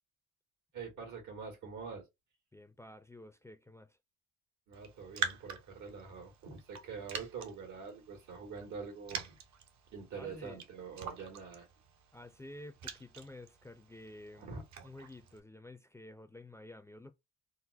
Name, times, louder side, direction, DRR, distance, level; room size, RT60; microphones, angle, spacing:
voice 1, 0.7-2.0 4.7-9.4 9.9-11.7 14.3-14.6, right 5 dB, 80° right, 1.8 m, -45 dB
voice 2, 2.5-4.0 10.2-10.6 12.1-14.6 14.8-17.1, left 1 dB, 10° left, 0.4 m, -51 dB
Raindrop, 4.7-15.4, right 6 dB, 65° right, 0.8 m, -45 dB
3.9 x 2.1 x 2.5 m
cardioid pair, 90°, 30 cm